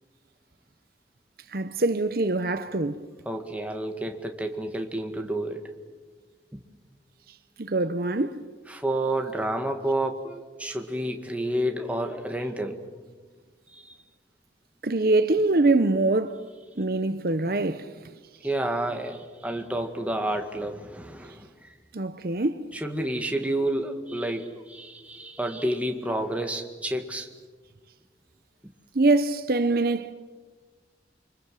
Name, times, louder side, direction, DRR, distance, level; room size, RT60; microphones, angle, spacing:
voice 1, 1.5-3.0 7.6-8.4 14.8-16.4 16.8-17.9 21.9-22.7 28.9-30.1, right 2 dB, 55° right, 0.9 m, -24 dB
voice 2, 3.3-5.6 6.5-6.6 8.7-13.0 13.7-13.9 18.4-21.7 22.7-27.3 28.6-28.7, right 1 dB, 5° right, 2.0 m, -30 dB
29.5 x 25.0 x 7.6 m
head